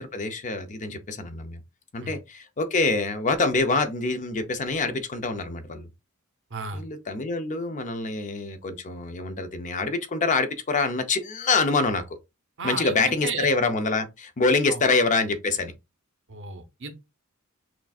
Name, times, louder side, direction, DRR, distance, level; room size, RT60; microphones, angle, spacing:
voice 1, 0.0-1.6 1.9-5.9 6.7-12.0 12.6-15.7, left 3 dB, 35° left, 0.5 m, -25 dB
voice 2, 6.5-6.8 12.6-13.5 14.7-14.8 16.3-17.0, right 4 dB, 60° right, 0.7 m, -34 dB
5.9 x 2.4 x 2.3 m
head